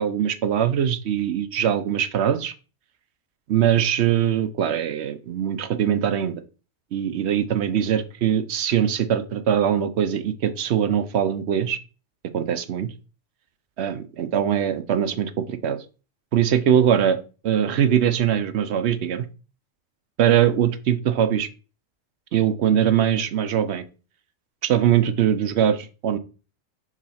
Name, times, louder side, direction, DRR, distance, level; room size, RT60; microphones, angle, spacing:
voice 1, 0.0-2.5 3.5-6.4 6.9-11.8 12.3-12.9 13.8-15.8 16.3-17.2 17.4-19.3 20.2-21.5 22.3-23.8 24.6-26.2, right 9 dB, 65° right, 12 dB, 0.8 m, -22 dB
4.9 x 4.1 x 5.6 m, 0.35 s
omnidirectional pair, 1.3 m